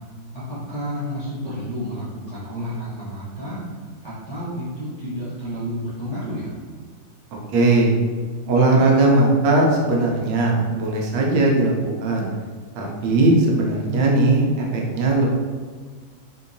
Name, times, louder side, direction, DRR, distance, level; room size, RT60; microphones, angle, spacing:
voice 1, 0.3-3.7 4.0-6.6, equal, 30° left, -11 dB, 0.5 m, -30 dB
voice 2, 7.3-8.0 8.5-12.3 12.7-15.3, right 2 dB, 80° right, -1 dB, 1.3 m, -19 dB
3.5 x 2.8 x 2.5 m, 1.5 s
omnidirectional pair, 2.0 m